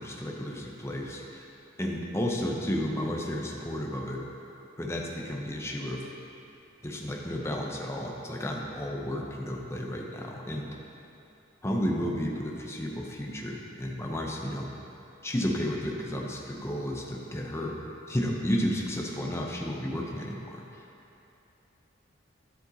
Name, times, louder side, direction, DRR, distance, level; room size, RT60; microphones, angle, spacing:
voice 1, 0.0-1.4 1.8-4.2 4.8-6.0 6.8-10.7 11.6-14.7 15.2-17.8 18.1-20.6, equal, 15° left, -1 dB, 0.7 m, -32 dB
10.0 x 7.7 x 2.8 m, 2.8 s
head